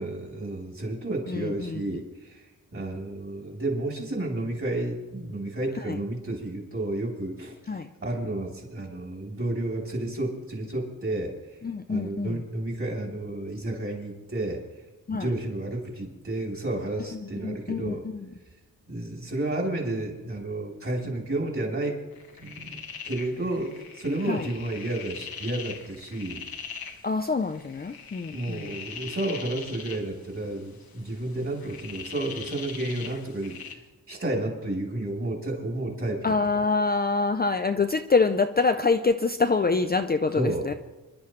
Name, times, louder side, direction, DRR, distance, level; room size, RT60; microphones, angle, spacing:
voice 1, 0.0-2.5 2.7-11.3 11.9-14.6 15.1-18.1 18.9-22.0 22.3-22.8 23.0-26.4 28.3-36.3 40.3-40.6, right 1 dB, 35° right, -1 dB, 3.6 m, -31 dB
voice 2, 1.3-1.8 5.9-6.0 7.7-7.9 11.6-12.4 15.1-15.3 17.4-18.3 24.3-24.5 27.0-28.8 36.2-40.7, left 4 dB, 25° left, 6 dB, 0.5 m, -25 dB
sound 1, 22.1-33.7, left 6 dB, 80° left, 1.5 m, -42 dB
27.0 x 11.5 x 3.2 m, 1.1 s
wide cardioid pair, 135°, 36 cm